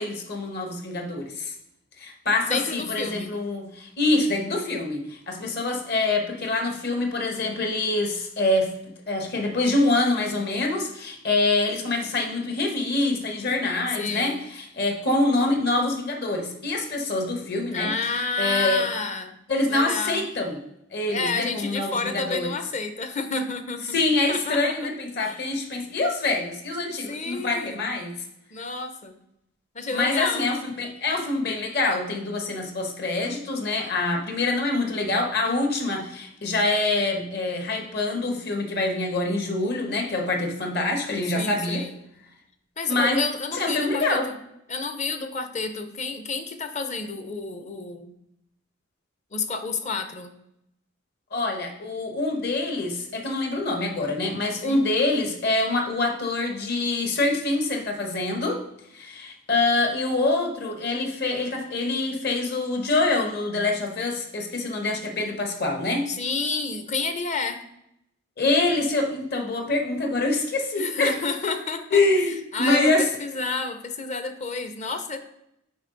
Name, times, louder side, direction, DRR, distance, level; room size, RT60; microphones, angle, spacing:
voice 1, 0.0-1.5 2.0-8.7 9.1-17.9 18.4-18.8 19.5-20.6 20.9-22.5 23.9-28.1 29.9-41.9 42.9-43.2 43.5-44.3 51.3-58.6 58.9-66.1 68.4-71.1 71.9-73.0, left 2 dB, 55° left, 2 dB, 1.3 m, -25 dB
voice 2, 2.5-3.3 14.0-14.4 17.7-19.4 19.7-20.3 21.1-24.0 24.3-24.8 25.2-25.4 27.1-27.9 28.5-29.1 29.7-30.5 41.3-42.0 42.8-44.4 44.7-48.1 49.3-50.3 54.6-54.9 66.1-67.6 70.8-75.2, left 4 dB, 35° left, 8 dB, 0.7 m, -30 dB
7.9 x 5.0 x 3.9 m, 0.79 s
head